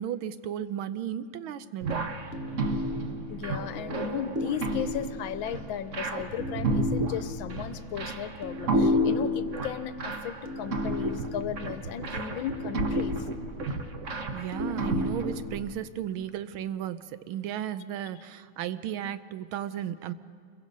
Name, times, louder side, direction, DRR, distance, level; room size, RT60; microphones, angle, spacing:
voice 1, 0.0-2.2 14.3-20.1, right 10 dB, 85° right, 1.6 m, -34 dB
sound 1, 1.8-15.6, equal, 45° right, 1.2 m, -31 dB
voice 2, 3.3-13.1, left 9 dB, 80° left, 1.5 m, -35 dB
28.5 x 22.5 x 5.4 m
omnidirectional pair, 2.2 m